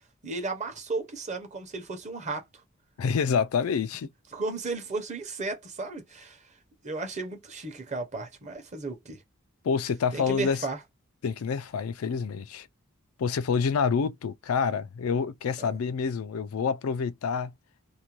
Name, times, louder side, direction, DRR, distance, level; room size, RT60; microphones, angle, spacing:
voice 1, 0.2-2.4 4.3-6.5 6.8-9.2 10.1-10.8 15.6-15.7, right 3 dB, 35° right, 0.8 m, -34 dB
voice 2, 3.0-4.1 9.6-10.6 11.2-12.7 13.2-17.5, left 6 dB, 80° left, 0.4 m, -27 dB
2.5 x 2.2 x 3.0 m
head